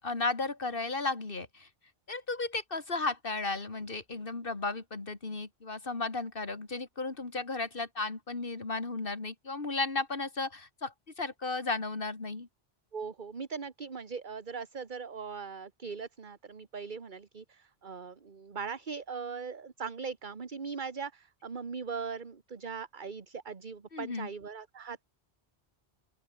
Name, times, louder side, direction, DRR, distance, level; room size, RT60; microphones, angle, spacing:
voice 1, 0.0-1.7 2.1-12.5 23.9-24.3, left 3 dB, 60° left, 2.7 m, -34 dB
voice 2, 12.9-25.0, right 5 dB, 50° right, 1.5 m, -40 dB
open air
omnidirectional pair, 1.1 m